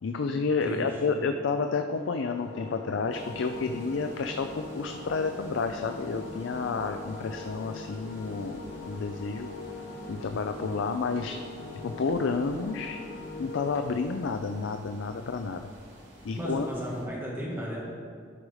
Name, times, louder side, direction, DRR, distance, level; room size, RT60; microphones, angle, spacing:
voice 1, 0.0-8.6 8.9-9.5 10.1-11.4 11.8-13.0 13.4-15.6 16.2-16.7, left 4 dB, 80° left, 6 dB, 0.4 m, -30 dB
voice 2, 0.6-1.1 16.4-17.8, equal, 10° right, -6 dB, 2.0 m, -34 dB
sound 1, 1.9-13.8, left 3 dB, 60° left, 0.9 m, -41 dB
sound 2, 3.1-17.0, right 1 dB, 65° right, 2.5 m, -52 dB
12.5 x 4.9 x 4.8 m, 2.1 s
head